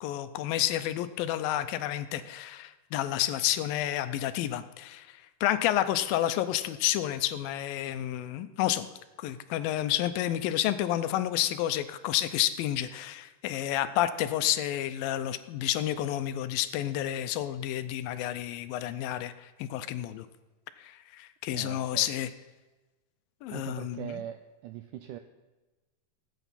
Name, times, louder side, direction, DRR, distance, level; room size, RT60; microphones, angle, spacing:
voice 1, 0.0-8.9 9.2-20.3 20.8-22.3 23.4-24.0, left 12 dB, 80° left, 11 dB, 2.3 m, -30 dB
voice 2, 21.5-22.1 23.5-25.2, right 11 dB, 85° right, 8 dB, 1.8 m, -41 dB
18.0 x 9.0 x 4.1 m, 1.2 s
omnidirectional pair, 4.3 m